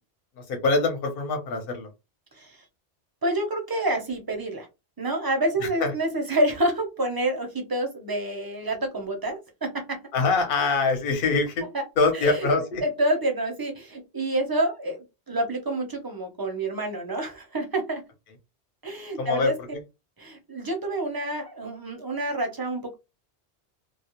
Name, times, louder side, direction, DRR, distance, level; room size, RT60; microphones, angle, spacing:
voice 1, 0.5-1.9 5.6-5.9 10.1-11.7 12.0-12.8 19.2-19.5, left 3 dB, 60° left, 4 dB, 0.9 m, -24 dB
voice 2, 3.2-4.7 5.0-10.0 11.7-11.8 12.1-12.5 12.8-18.0 18.8-19.8 20.2-22.9, right 1 dB, 25° right, 3 dB, 0.5 m, -28 dB
2.3 x 2.1 x 2.9 m, 0.25 s
omnidirectional pair, 1.1 m